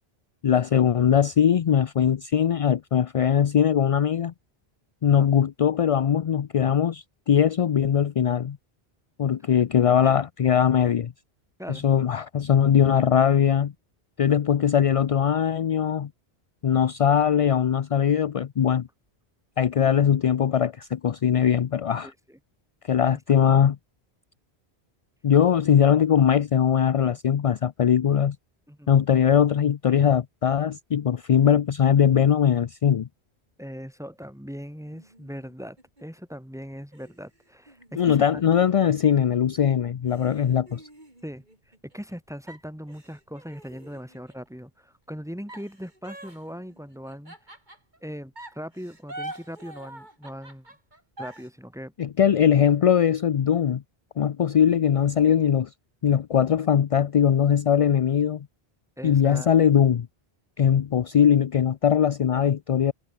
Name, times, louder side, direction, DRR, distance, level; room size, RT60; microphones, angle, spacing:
voice 1, 0.4-4.3 5.0-8.6 9.2-11.1 11.7-13.7 14.2-16.1 16.6-18.9 19.6-22.1 22.8-23.8 25.2-28.4 28.9-33.1 38.0-40.9 52.0-53.8 54.2-55.7 56.0-58.5 59.0-60.1 60.6-62.9, left 8 dB, 50° left, 0.4 m, -21 dB
voice 2, 22.0-22.4 23.1-23.2 28.7-28.9 33.6-38.4 41.2-47.4 48.0-50.7 51.2-51.9 59.0-59.5, equal, 5° right, 3.5 m, -39 dB
sound 1, 34.9-36.2 36.9-39.1 39.6-39.7 40.1-42.1 42.5-44.5 45.5-48.0 48.3-51.5, right 1 dB, 45° right, 5.5 m, -45 dB
omnidirectional pair, 1.1 m